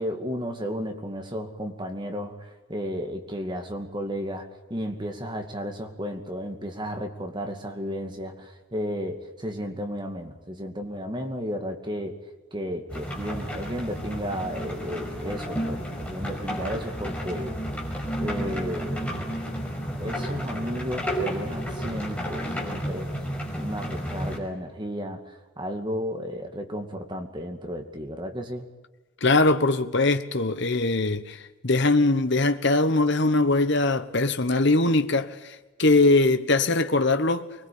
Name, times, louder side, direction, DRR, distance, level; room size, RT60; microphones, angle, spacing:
voice 1, 0.0-12.2 12.5-17.5 18.2-19.1 20.0-23.1 23.5-28.7, equal, 20° right, 2.4 m, -33 dB
sound 1, 12.9-24.4, equal, 5° left, 5.5 m, -32 dB
voice 2, 29.2-37.5, left 2 dB, 55° left, 1.3 m, -22 dB
25.0 x 21.0 x 8.7 m
head